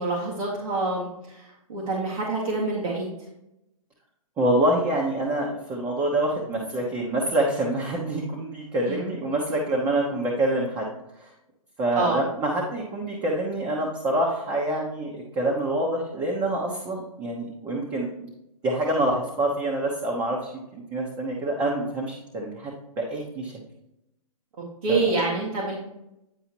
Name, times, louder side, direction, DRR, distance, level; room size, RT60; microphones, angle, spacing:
voice 1, 0.0-3.1 8.9-9.1 12.0-12.2 24.8-25.8, right 3 dB, 70° right, -6 dB, 2.1 m, -27 dB
voice 2, 4.4-10.9 11.2-11.3 11.8-18.3 18.6-23.5 24.9-25.0, right 1 dB, 20° right, -2 dB, 1.1 m, -26 dB
9.9 x 4.8 x 3.0 m, 0.88 s
hypercardioid pair, 145°, 19 cm